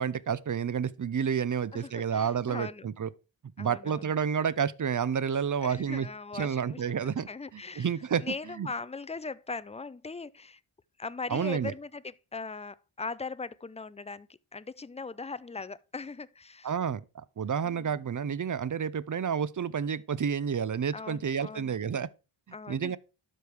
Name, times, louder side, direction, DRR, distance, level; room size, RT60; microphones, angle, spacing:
voice 1, 0.0-3.1 3.6-6.1 6.3-8.7 11.3-11.7 16.6-22.1 22.7-23.0, right 7 dB, 40° right, 0.5 m, -30 dB
voice 2, 1.7-2.9 3.6-4.1 5.6-7.0 7.3-7.9 8.2-10.6 11.0-16.7 17.6-18.0 20.9-21.8 22.5-23.0, left 4 dB, 15° left, 0.3 m, -40 dB
12.0 x 4.7 x 3.3 m
cardioid pair, 50°, 49 cm